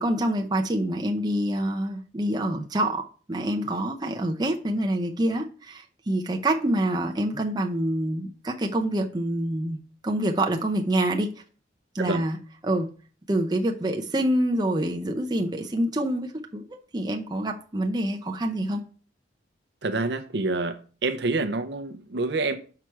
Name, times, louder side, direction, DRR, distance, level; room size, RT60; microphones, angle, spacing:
voice 1, 0.0-3.0 3.3-11.3 11.9-12.9 13.3-18.8, right 1 dB, 20° right, 0.7 m, -26 dB
voice 2, 19.8-20.8 21.0-22.6, right 3 dB, 60° right, 0.7 m, -27 dB
6.1 x 5.8 x 4.6 m
head